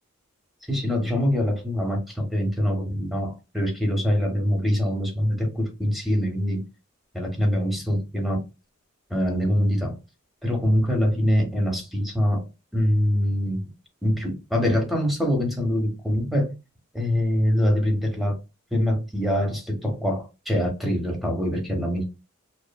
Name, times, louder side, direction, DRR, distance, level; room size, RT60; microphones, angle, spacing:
voice 1, 0.6-6.6 7.1-8.4 9.1-9.9 10.4-12.4 12.7-13.7 14.0-16.5 16.9-18.4 18.7-22.1, equal, ahead, 0.7 m, -24 dB
2.9 x 2.1 x 2.2 m
head